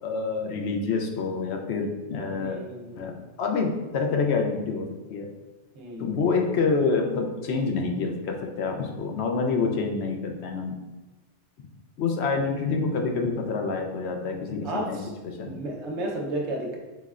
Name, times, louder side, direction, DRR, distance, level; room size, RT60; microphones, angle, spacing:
voice 1, 0.0-2.6 3.0-5.3 6.0-10.8 12.0-15.6, left 4 dB, 70° left, 3 dB, 0.8 m, -27 dB
voice 2, 2.4-3.1 5.7-6.1 14.6-15.1 15.5-16.8, right 1 dB, 75° right, 0 dB, 1.0 m, -33 dB
5.4 x 3.2 x 2.4 m, 1.1 s
omnidirectional pair, 1.2 m